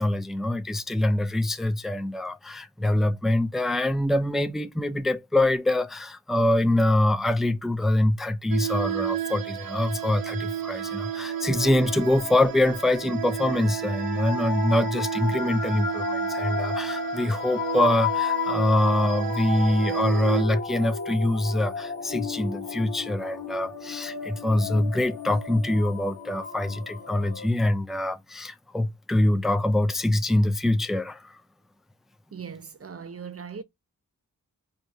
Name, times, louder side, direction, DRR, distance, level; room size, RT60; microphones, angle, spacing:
voice 1, 0.0-31.4, left 1 dB, ahead, 0.4 m, -24 dB
sound 1, 8.5-20.4, right 11 dB, 85° right, 0.5 m, -32 dB
sound 2, 10.7-27.5, left 7 dB, 50° left, 1.3 m, -34 dB
voice 2, 32.3-33.6, right 6 dB, 45° right, 0.6 m, -39 dB
4.5 x 2.8 x 2.6 m
wide cardioid pair, 60°, 34 cm